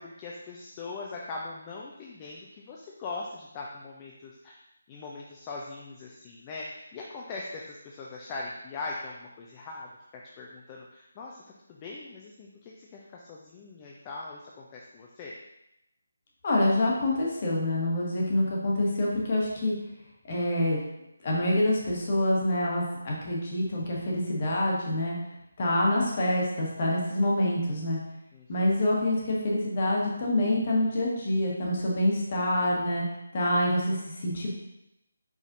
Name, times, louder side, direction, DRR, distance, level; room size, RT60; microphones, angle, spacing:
voice 1, 0.0-4.6 4.9-9.9 10.4-11.4 11.7-15.3 28.3-28.5 32.5-32.9, left 3 dB, 20° left, -2 dB, 0.4 m, -41 dB
voice 2, 16.4-19.7 20.3-20.8 21.2-25.1 25.6-28.0 28.5-33.0 33.3-34.5, left 1 dB, 40° left, -3 dB, 1.4 m, -26 dB
5.0 x 4.0 x 2.7 m, 0.86 s
figure-of-eight pair, 160°, 0 cm